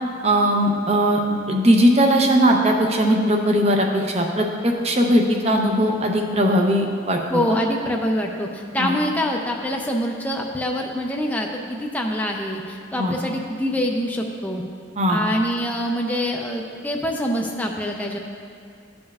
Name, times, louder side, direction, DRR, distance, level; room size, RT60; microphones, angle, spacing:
voice 1, 0.2-1.2 1.5-7.6 8.8-8.9 13.0-13.1 15.0-15.2, equal, 30° right, 2 dB, 0.7 m, -19 dB
voice 2, 7.3-14.6 15.1-18.2, equal, 10° left, 1 dB, 0.4 m, -25 dB
14.0 x 5.3 x 2.4 m, 2.3 s
head